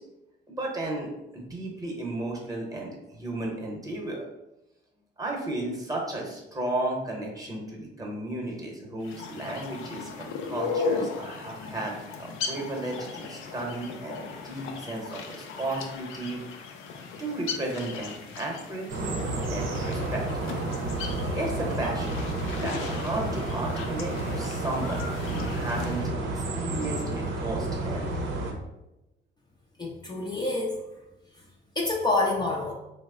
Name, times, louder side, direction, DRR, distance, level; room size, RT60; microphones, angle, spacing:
voice 1, 0.5-4.2 5.2-16.4 17.2-19.2 19.5-20.5 21.3-22.3 22.5-26.0 26.3-28.1, right 2 dB, 15° right, -1 dB, 0.9 m, -34 dB
sound 1, 9.0-26.1, left 4 dB, 85° left, 0.5 m, -37 dB
sound 2, 18.9-28.5, right 2 dB, 80° right, 0.6 m, -31 dB
voice 2, 29.8-30.8 31.8-32.7, left 2 dB, 20° left, -3 dB, 0.5 m, -27 dB
3.1 x 2.0 x 3.6 m, 0.93 s
cardioid pair, 90°, 20 cm